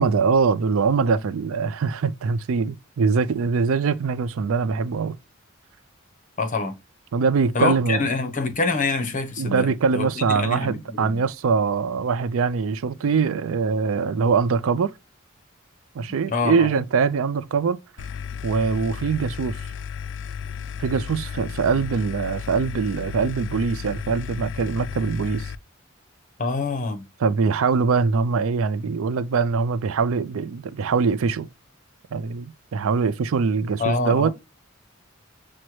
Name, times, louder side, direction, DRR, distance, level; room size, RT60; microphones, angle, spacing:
voice 1, 0.0-5.2 7.1-8.1 9.4-14.9 15.9-17.8 18.4-19.6 20.8-25.5 27.2-31.5 32.1-34.3, right 5 dB, 80° right, 0.4 m, -23 dB
voice 2, 6.4-6.7 7.5-11.2 16.3-16.7 26.4-27.0 33.8-34.3, left 3 dB, 40° left, 0.8 m, -26 dB
sound 1, 18.0-25.5, left 7 dB, 60° left, 0.3 m, -34 dB
6.2 x 2.1 x 2.9 m
head